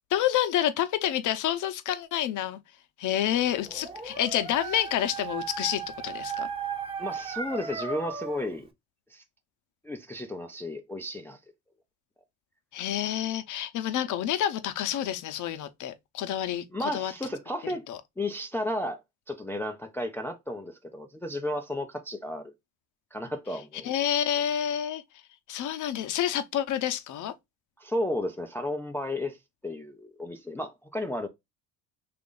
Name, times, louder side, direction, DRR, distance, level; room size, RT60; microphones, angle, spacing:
voice 1, 0.1-2.6 3.0-6.5 12.7-17.1 17.9-18.0 23.8-25.0 25.5-27.3, left 11 dB, 50° left, 0.7 m, -28 dB
Dog, 3.5-8.6, right 6 dB, 15° right, 0.8 m, -36 dB
voice 2, 7.0-8.7 9.1-9.2 9.8-11.4 16.7-17.8 18.2-19.0 19.3-22.5 23.1-23.9 27.8-29.4 29.6-31.3, left 1 dB, 5° left, 0.4 m, -33 dB
2.9 x 2.5 x 3.6 m
supercardioid pair, 90°, 39 cm